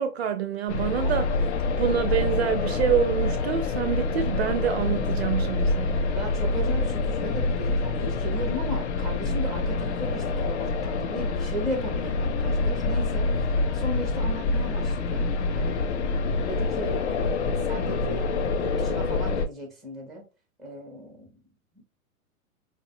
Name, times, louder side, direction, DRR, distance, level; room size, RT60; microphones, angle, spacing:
voice 1, 0.0-1.4 1.8-6.1, right 8 dB, 50° right, 0.4 m, -26 dB
sound 1, 0.7-19.5, left 3 dB, 50° left, 0.5 m, -26 dB
voice 2, 6.1-15.2 15.5-20.3 20.6-21.3 21.7-21.8, equal, ahead, 0.5 m, -36 dB
4.2 x 2.0 x 2.7 m
hypercardioid pair, 125°, 44 cm